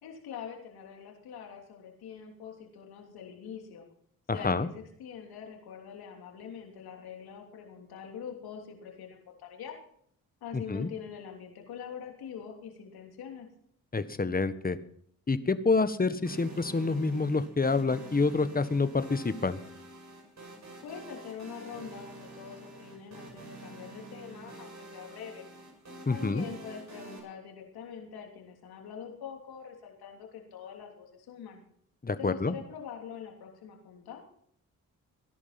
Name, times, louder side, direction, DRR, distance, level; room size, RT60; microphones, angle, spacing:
voice 1, 0.0-3.9 4.3-9.8 10.4-13.5 20.8-25.5 26.1-31.6 32.2-34.2, left 7 dB, 85° left, 2 dB, 3.3 m, -44 dB
voice 2, 4.3-4.7 10.5-10.9 13.9-14.8 15.3-19.6 26.1-26.5 32.0-32.5, left 3 dB, 25° left, 12 dB, 1.5 m, -27 dB
sound 1, 16.2-27.2, right 2 dB, 50° right, 7.0 m, -47 dB
17.0 x 11.0 x 6.0 m, 0.64 s
supercardioid pair, 50°, 36 cm